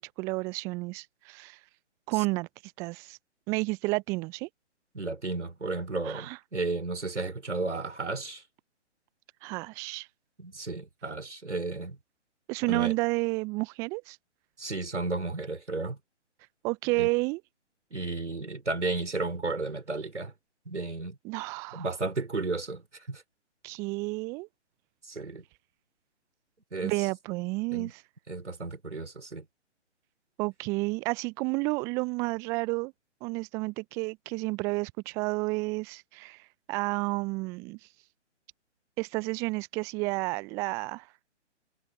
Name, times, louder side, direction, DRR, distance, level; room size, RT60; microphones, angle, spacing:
voice 1, 0.0-1.6 2.1-2.5 2.8-3.2 3.5-4.5 6.0-6.4 9.4-10.1 12.5-14.2 16.6-17.4 21.2-21.9 23.6-24.5 26.8-28.0 30.4-32.9 33.2-36.4 36.7-37.8 39.0-41.1, right 26 dB, 10° right, 0.7 m, -31 dB
voice 2, 4.9-8.4 10.4-12.0 12.7-12.9 14.6-16.0 17.0-17.1 17.9-20.3 20.7-21.2 21.7-22.8 23.1-23.2 25.1-25.4 26.7-26.9 27.7-27.9 28.3-29.5, right 3 dB, 75° right, 4.1 m, -33 dB
figure-of-eight pair, 135°, 36 cm